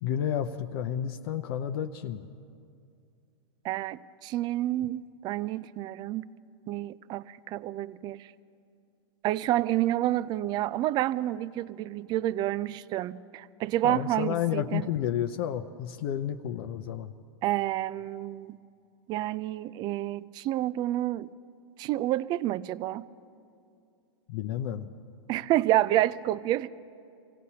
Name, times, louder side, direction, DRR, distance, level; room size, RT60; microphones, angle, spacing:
voice 1, 0.0-2.3 13.8-17.1 24.3-24.9, left 10 dB, 60° left, 6 dB, 0.6 m, -31 dB
voice 2, 3.6-6.3 6.7-8.3 9.2-14.9 17.4-18.6 19.1-21.3 21.8-23.1 25.3-26.7, right 14 dB, 30° right, 17 dB, 0.3 m, -29 dB
26.0 x 16.5 x 2.8 m, 2.4 s
hypercardioid pair, 130°, 15 cm